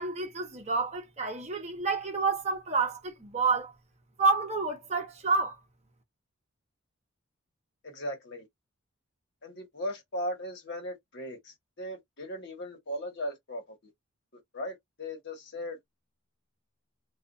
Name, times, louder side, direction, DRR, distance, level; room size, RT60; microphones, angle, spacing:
voice 1, 0.0-3.7 4.2-5.6, right 4 dB, 30° right, 0.9 m, -29 dB
voice 2, 7.8-8.5 9.4-13.9 14.5-15.8, equal, 55° left, 1.2 m, -38 dB
2.4 x 2.4 x 2.5 m
head